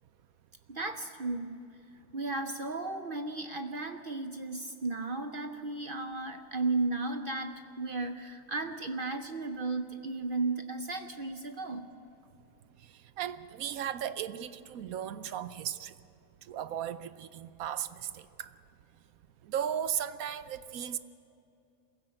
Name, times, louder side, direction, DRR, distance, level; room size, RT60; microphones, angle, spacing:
voice 1, 0.7-1.6 2.1-11.9, right 3 dB, 45° right, 7 dB, 0.8 m, -34 dB
voice 2, 13.2-15.9 16.5-18.5 19.4-21.0, right 9 dB, 75° right, 13 dB, 1.1 m, -36 dB
22.0 x 16.0 x 7.7 m, 2.7 s
omnidirectional pair, 1.5 m